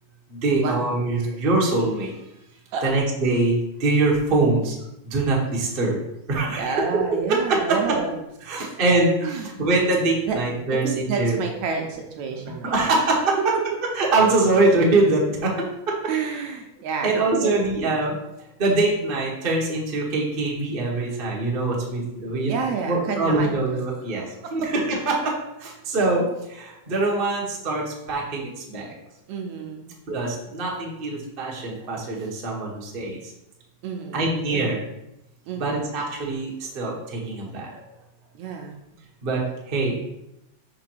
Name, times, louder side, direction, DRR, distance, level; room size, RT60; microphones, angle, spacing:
voice 1, 0.3-2.1 2.8-4.8 5.0-6.0 6.3-6.8 8.4-11.4 12.6-13.4 13.9-15.5 15.9-16.0 17.0-28.9 30.1-33.3 34.1-34.8 35.6-37.8 39.2-40.1, right 2 dB, 55° right, -3 dB, 0.6 m, -23 dB
voice 2, 6.5-8.1 9.2-9.6 10.2-10.4 10.7-12.9 16.1-17.1 17.4-17.5 21.7-21.9 22.5-23.6 24.1-24.5 29.3-29.9 33.8-34.7 35.5-35.8 38.3-38.8, right 5 dB, 75° right, 2 dB, 1.8 m, -30 dB
5.8 x 3.9 x 6.2 m, 0.87 s
omnidirectional pair, 3.8 m